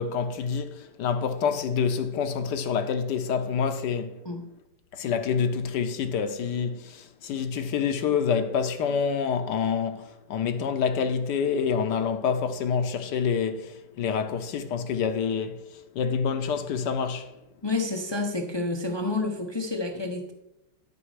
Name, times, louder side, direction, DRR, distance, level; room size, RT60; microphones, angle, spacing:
voice 1, 0.0-4.2 4.9-15.6 15.9-17.3, left 6 dB, 75° left, 1.3 m, -27 dB
voice 2, 17.6-20.3, left 2 dB, 40° left, 0.3 m, -29 dB
12.5 x 5.4 x 4.8 m
omnidirectional pair, 2.0 m